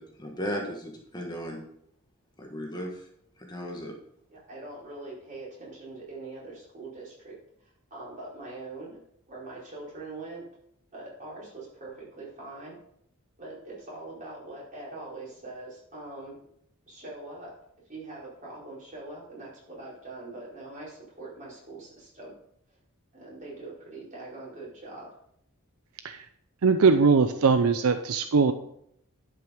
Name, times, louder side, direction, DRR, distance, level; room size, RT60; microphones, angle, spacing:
voice 1, 0.0-1.6 2.4-3.1 3.4-3.9, equal, 20° left, 1 dB, 1.4 m, -36 dB
voice 2, 4.3-7.4 7.9-10.5 10.9-12.8 13.4-16.4 16.9-17.5 17.9-22.3 23.1-25.1, right 2 dB, 35° right, -6 dB, 4.7 m, -42 dB
voice 3, 26.6-28.5, right 5 dB, 75° right, 9 dB, 0.6 m, -21 dB
11.0 x 5.9 x 5.1 m, 0.72 s
head